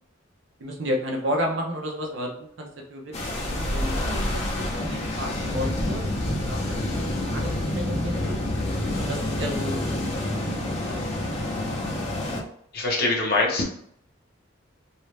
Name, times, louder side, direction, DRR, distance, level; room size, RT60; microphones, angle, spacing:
voice 1, 0.6-3.1 3.5-8.4 9.0-10.5 10.9-11.3, equal, 75° right, 0 dB, 0.7 m, -32 dB
sound 1, 3.1-12.4, left 1 dB, 35° left, 0.5 m, -28 dB
voice 2, 12.7-13.6, left 3 dB, 55° left, -2 dB, 0.8 m, -23 dB
2.7 x 2.1 x 3.2 m, 0.66 s
head